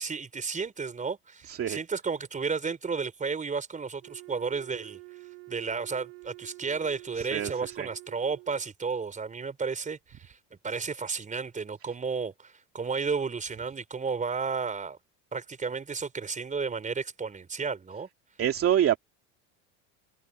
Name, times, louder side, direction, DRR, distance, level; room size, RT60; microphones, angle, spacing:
voice 1, 0.0-5.0 5.5-10.4 10.6-15.0 15.3-18.1, right 5 dB, 20° right, 4.8 m, -33 dB
voice 2, 1.5-1.8 7.2-7.5 7.8-7.9 18.4-19.0, right 10 dB, 40° right, 2.4 m, -25 dB
Wind instrument woodwind instrument, 4.0-8.7, right 28 dB, 80° right, 7.2 m, -48 dB
supercardioid pair, 105°, 35 cm